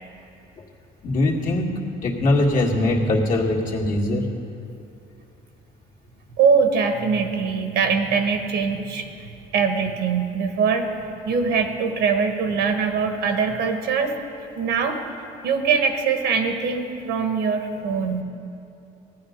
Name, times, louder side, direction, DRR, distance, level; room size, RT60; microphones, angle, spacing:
voice 1, 1.0-1.7 2.0-4.3, left 2 dB, 55° left, -3 dB, 2.2 m, -21 dB
voice 2, 6.4-10.9 11.2-14.1 14.5-15.0 15.4-18.2, right 5 dB, 80° right, 6 dB, 1.4 m, -22 dB
17.5 x 10.5 x 5.2 m, 2.8 s
cardioid pair, 110°, 17 cm